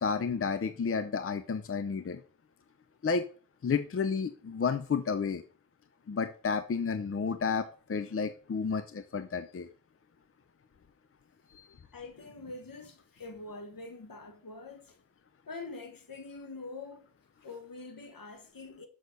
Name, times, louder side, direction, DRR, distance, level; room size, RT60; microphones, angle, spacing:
voice 1, 0.0-2.2 3.0-3.3 3.6-5.4 6.1-9.7 11.5-11.7, left 5 dB, 40° left, 0.6 m, -31 dB
voice 2, 11.9-15.0 15.5-17.1 17.4-18.9, left 3 dB, 70° left, 1.9 m, -45 dB
6.5 x 6.4 x 6.7 m
wide cardioid pair, 110°, 35 cm